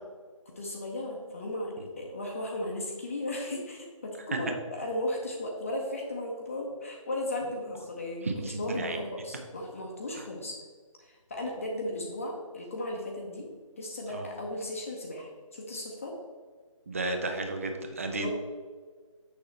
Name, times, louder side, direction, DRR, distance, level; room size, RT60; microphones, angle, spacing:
voice 1, 0.6-10.6 11.0-13.5 13.8-16.1 18.2-18.3, left 1 dB, 25° left, -1 dB, 0.7 m, -36 dB
voice 2, 8.2-9.0 10.1-10.2 14.1-14.2 16.9-18.3, right 2 dB, 25° right, 5 dB, 0.6 m, -33 dB
6.8 x 6.5 x 3.2 m, 1.5 s
figure-of-eight pair, 155°, 17 cm